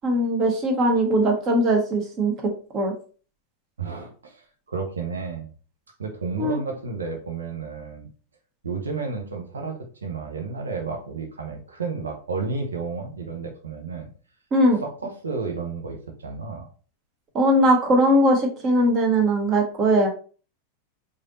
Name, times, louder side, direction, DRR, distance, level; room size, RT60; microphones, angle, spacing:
voice 1, 0.0-2.3 2.7-2.9 6.4-6.6 14.5-14.8 17.3-20.1, right 1 dB, 30° right, 1 dB, 1.4 m, -20 dB
voice 2, 3.8-5.5 6.0-8.1 8.6-14.1 14.8-16.7, right 4 dB, 70° right, 2 dB, 0.8 m, -32 dB
4.9 x 2.8 x 3.9 m, 0.39 s
figure-of-eight pair, 90°, 0 cm